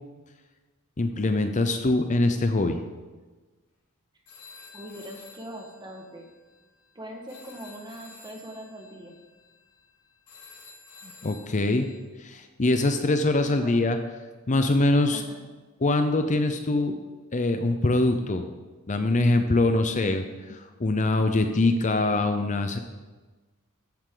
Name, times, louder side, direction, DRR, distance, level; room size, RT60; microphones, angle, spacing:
voice 1, 1.0-2.8 11.2-11.9 12.2-14.0 14.5-15.2 15.8-17.0 17.3-18.5 18.9-22.8, left 2 dB, 35° left, 7 dB, 0.7 m, -23 dB
sound 1, 4.3-12.0, left 4 dB, 80° left, 2.2 m, -51 dB
voice 2, 4.7-6.3 6.9-9.2 11.7-11.9 13.5-13.7 15.1-15.4, right 1 dB, 20° right, 1 dB, 1.7 m, -41 dB
14.5 x 9.4 x 3.9 m, 1.3 s
head